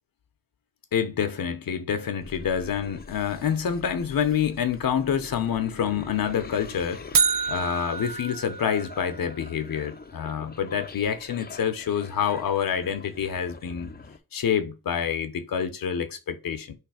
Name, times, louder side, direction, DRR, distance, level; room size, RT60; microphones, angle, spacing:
voice 1, 0.9-13.9 14.3-16.7, left 8 dB, 75° left, 0.7 m, -27 dB
sound 1, 2.2-14.2, left 5 dB, 30° left, 0.5 m, -45 dB
sound 2, 7.1-9.3, right 6 dB, 70° right, 0.5 m, -27 dB
3.3 x 3.3 x 4.7 m
wide cardioid pair, 90°, 35 cm